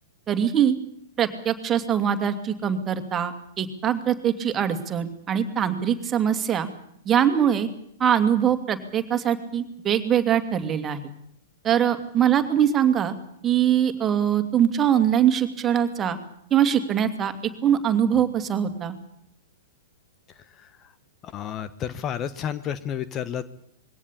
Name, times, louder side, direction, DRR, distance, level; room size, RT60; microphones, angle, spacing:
voice 1, 0.3-0.7 1.2-6.7 7.1-7.7 8.0-11.0 11.6-13.1 13.4-16.2 16.5-17.3 17.6-18.9, right 9 dB, 25° right, 7 dB, 2.6 m, -22 dB
voice 2, 21.2-23.5, left 9 dB, 30° left, 14 dB, 1.1 m, -31 dB
22.0 x 17.5 x 8.7 m, 0.73 s
figure-of-eight pair, 105°, 0 cm